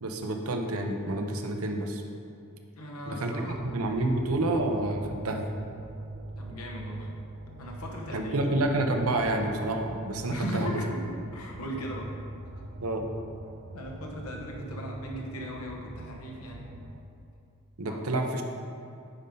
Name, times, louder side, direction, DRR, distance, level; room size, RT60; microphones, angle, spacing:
voice 1, 0.0-2.0 3.1-5.5 8.1-10.8 12.8-13.1 17.8-18.4, right 2 dB, 75° right, 4 dB, 0.8 m, -29 dB
voice 2, 2.8-3.6 4.0-4.1 6.4-7.2 7.6-8.5 10.3-12.1 13.7-16.6 17.9-18.0, equal, 85° left, 0 dB, 1.2 m, -38 dB
sound 1, 3.5-17.0, right 2 dB, 55° right, 0.5 m, -42 dB
9.7 x 5.4 x 3.8 m, 2.6 s
head